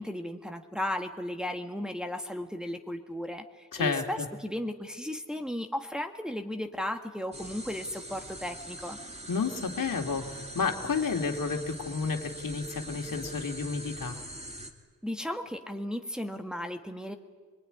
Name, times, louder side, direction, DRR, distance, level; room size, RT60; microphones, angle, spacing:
voice 1, 0.0-9.0 15.0-17.2, left 1 dB, ahead, 3 dB, 1.7 m, -35 dB
voice 2, 3.7-4.3 9.3-14.2, left 5 dB, 75° left, 3 dB, 2.6 m, -31 dB
sound 1, 7.3-14.7, right 1 dB, 20° right, 2.6 m, -43 dB
23.5 x 23.5 x 9.9 m, 1.5 s
wide cardioid pair, 95°, 33 cm